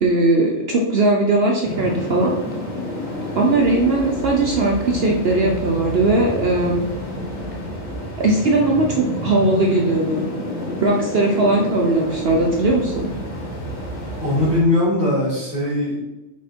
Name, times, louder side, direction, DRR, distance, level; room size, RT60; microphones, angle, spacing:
voice 1, 0.0-2.3 3.4-6.9 8.2-10.3 10.8-13.1, right 2 dB, 55° right, 0 dB, 0.9 m, -19 dB
sound 1, 1.6-14.6, equal, 85° left, 2.5 m, -29 dB
voice 2, 14.2-16.0, left 1 dB, 15° right, -10 dB, 2.2 m, -20 dB
5.8 x 4.2 x 4.5 m, 1.0 s
omnidirectional pair, 1.3 m